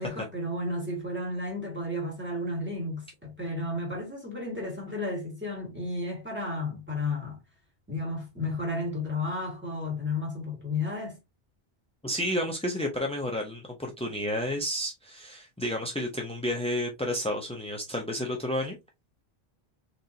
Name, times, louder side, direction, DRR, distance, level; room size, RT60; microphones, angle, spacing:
voice 1, 0.0-7.4 7.9-11.2, left 2 dB, 10° right, 1.9 m, -33 dB
voice 2, 12.0-18.8, left 1 dB, 10° left, 0.5 m, -31 dB
4.0 x 3.2 x 2.7 m
omnidirectional pair, 1.1 m